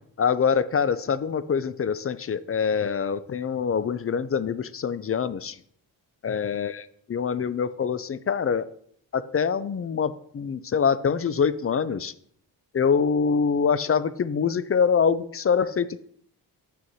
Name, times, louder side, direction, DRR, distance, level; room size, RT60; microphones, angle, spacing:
voice 1, 0.2-5.6 6.2-6.8 7.1-8.7 9.1-12.1 12.7-16.0, left 6 dB, 30° left, 15 dB, 0.4 m, -24 dB
7.4 x 6.3 x 2.8 m, 0.65 s
cardioid pair, 55°, 46 cm